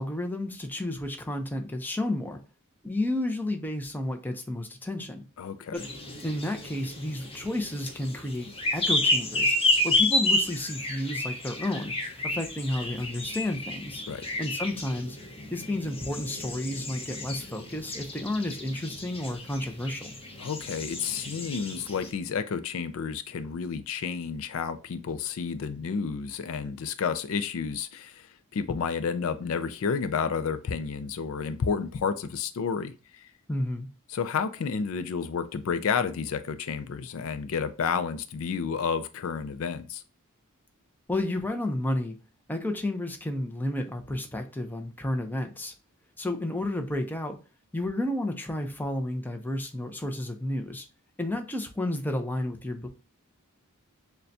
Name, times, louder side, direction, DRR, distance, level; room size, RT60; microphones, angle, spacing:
voice 1, 0.0-2.4 2.8-5.2 5.7-5.9 6.2-9.5 9.8-11.9 12.2-14.0 14.4-15.2 15.5-20.2 33.5-33.9 41.1-42.2 42.5-45.7 46.2-47.4 47.7-50.9 51.2-52.9, left 1 dB, 10° left, 0.5 m, -31 dB
voice 2, 5.4-5.8 14.1-14.2 20.4-33.3 34.1-40.0, left 6 dB, 65° left, 0.4 m, -31 dB
sound 1, 5.7-22.1, left 1 dB, 25° left, 1.0 m, -31 dB
6.5 x 2.2 x 2.7 m
head